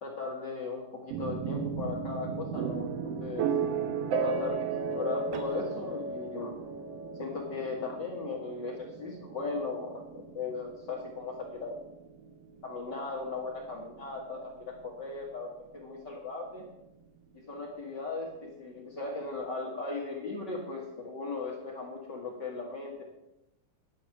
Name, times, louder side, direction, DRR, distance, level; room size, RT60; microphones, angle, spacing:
voice 1, 0.0-2.9 3.2-3.5 4.2-6.5 7.1-11.8 12.6-16.6 17.3-23.0, left 3 dB, 45° left, -2 dB, 1.6 m, -37 dB
sound 1, 1.1-14.9, right 5 dB, 65° right, 1.6 m, -35 dB
10.0 x 8.6 x 5.9 m, 0.90 s
omnidirectional pair, 3.9 m